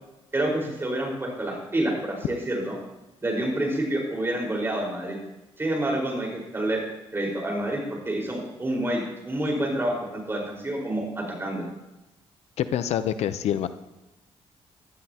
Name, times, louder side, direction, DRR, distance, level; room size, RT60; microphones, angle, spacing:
voice 1, 0.3-2.7 3.2-5.2 5.6-6.8 7.1-11.6, right 1 dB, 20° right, -1 dB, 4.6 m, -28 dB
voice 2, 12.6-13.7, left 10 dB, 80° left, 11 dB, 0.6 m, -26 dB
16.5 x 12.0 x 2.9 m, 1.0 s
cardioid pair, 105°, 11 cm